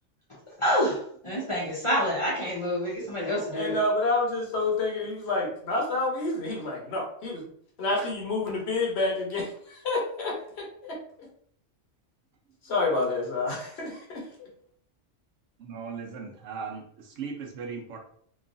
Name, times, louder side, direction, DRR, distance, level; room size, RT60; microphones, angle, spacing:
voice 1, 0.6-3.8, equal, 40° left, -6 dB, 0.5 m, -27 dB
voice 2, 3.5-7.4 7.8-11.0 12.6-14.5, left 2 dB, 65° left, -1 dB, 1.0 m, -29 dB
voice 3, 15.6-18.1, right 5 dB, 80° right, 2 dB, 1.0 m, -38 dB
3.0 x 2.3 x 2.5 m, 0.63 s
omnidirectional pair, 1.3 m